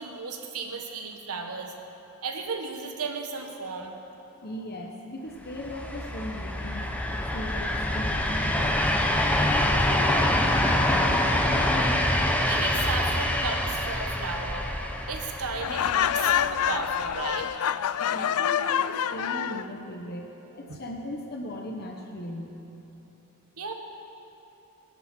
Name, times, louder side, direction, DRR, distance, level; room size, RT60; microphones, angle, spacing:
voice 1, 0.0-1.7 2.2-4.0 12.5-14.7 15.1-17.5 20.7-20.8 23.6-23.7, right 4 dB, 85° right, 3 dB, 1.5 m, -34 dB
voice 2, 4.4-6.9 7.3-11.4 18.1-22.5, left 1 dB, 45° left, 1 dB, 1.1 m, -38 dB
sound 1, 5.5-17.4, left 1 dB, 5° left, 0.8 m, -26 dB
Laughter, 15.6-19.7, left 9 dB, 75° left, 0.4 m, -26 dB
21.5 x 12.0 x 4.5 m, 3.0 s
head